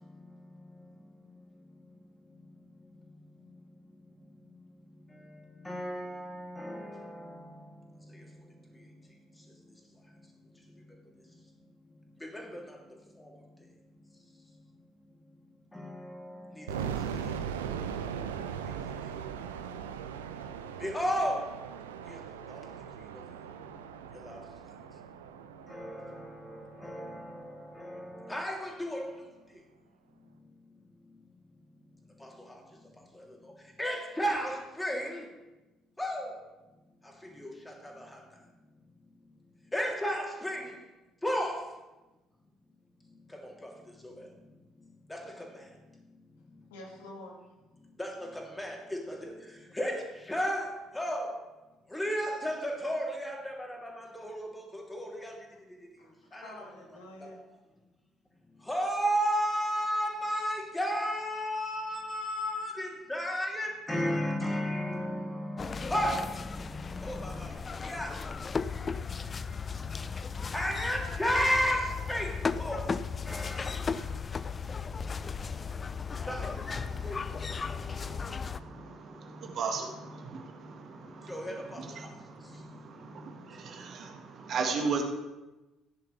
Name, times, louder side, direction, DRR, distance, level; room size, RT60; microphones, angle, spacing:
voice 1, 0.0-3.0 3.3-4.7 5.1-9.8 10.8-11.0 11.2-11.3 12.2-12.8 13.1-13.7 14.1-14.2 15.7-17.8 18.1-19.3 19.9-20.0 20.5-21.7 22.1-22.2 22.5-22.6 23.1-23.2 24.1-24.7 25.7-29.3 32.2-32.6 33.0-35.3 36.0-36.4 37.0-38.2 39.7-40.8 41.2-41.6 43.3-44.3 45.1-45.7 48.0-51.4 51.9-55.4 56.3-56.5 57.2-57.3 58.6-68.6 68.9-69.1 69.4-73.0 73.2-75.1 75.4-75.5 76.1-79.6 80.1-83.9, equal, 10° left, 3.1 m, -36 dB
sound 1, 16.7-27.6, right 8 dB, 80° right, 0.5 m, -39 dB
voice 2, 46.7-47.5 56.0-57.4, left 1 dB, 75° left, 2.1 m, -48 dB
sound 2, 65.6-78.6, left 5 dB, 30° left, 0.4 m, -36 dB
voice 3, 76.3-85.0, right 5 dB, 50° right, 1.7 m, -38 dB
15.0 x 10.0 x 3.3 m
figure-of-eight pair, 50°, 0 cm